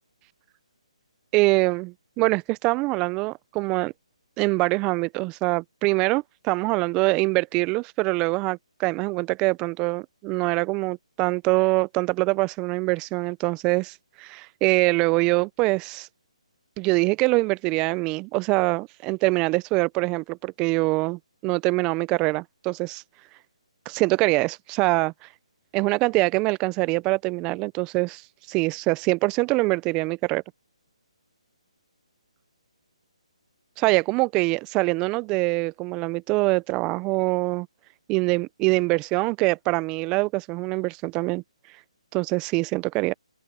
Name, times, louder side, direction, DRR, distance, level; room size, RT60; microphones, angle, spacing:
voice 1, 1.3-3.9 4.4-16.1 16.8-23.0 23.9-25.1 25.7-28.2 28.5-30.4 33.8-37.7 38.1-41.4 42.1-43.1, right 24 dB, 20° right, 0.5 m, -24 dB
open air
hypercardioid pair, 150°, 4 cm